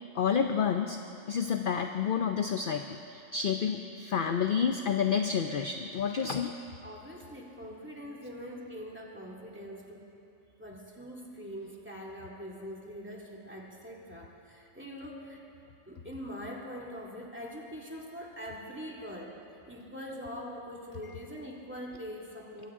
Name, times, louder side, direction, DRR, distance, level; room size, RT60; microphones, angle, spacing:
voice 1, 0.1-1.0 1.3-6.5, left 7 dB, 55° left, 6 dB, 0.6 m, -29 dB
voice 2, 6.8-10.0 10.6-15.4 15.9-22.7, equal, 10° right, -3 dB, 2.1 m, -43 dB
24.0 x 16.0 x 3.7 m, 2.8 s
omnidirectional pair, 1.4 m